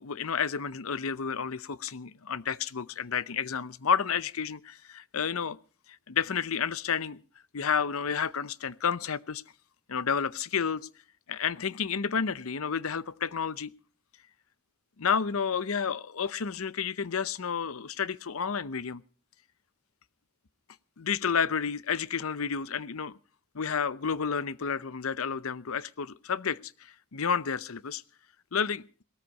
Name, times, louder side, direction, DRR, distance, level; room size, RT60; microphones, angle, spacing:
voice 1, 0.0-5.6 6.1-7.2 7.5-9.4 9.9-10.9 11.3-13.7 15.0-19.0 21.0-23.1 23.5-28.0 28.5-28.8, left 6 dB, 75° left, 0.7 m, -30 dB
18.5 x 13.5 x 5.3 m
head